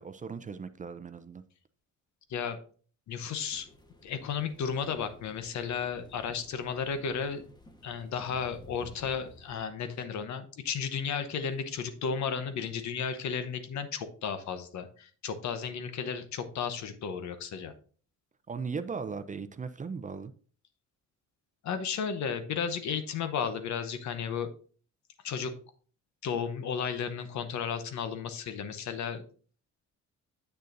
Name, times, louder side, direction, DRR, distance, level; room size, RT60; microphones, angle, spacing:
voice 1, 0.0-1.4 18.5-20.3, right 5 dB, 25° right, 12 dB, 0.5 m, -38 dB
voice 2, 3.1-3.7 4.0-7.4 7.8-17.7 21.6-24.5 25.2-25.5 26.2-29.2, left 6 dB, 70° left, 10 dB, 0.9 m, -34 dB
sound 1, 3.5-9.6, left 1 dB, 15° left, 1.2 m, -54 dB
7.9 x 6.6 x 2.6 m, 0.43 s
cardioid pair, 90°, 30 cm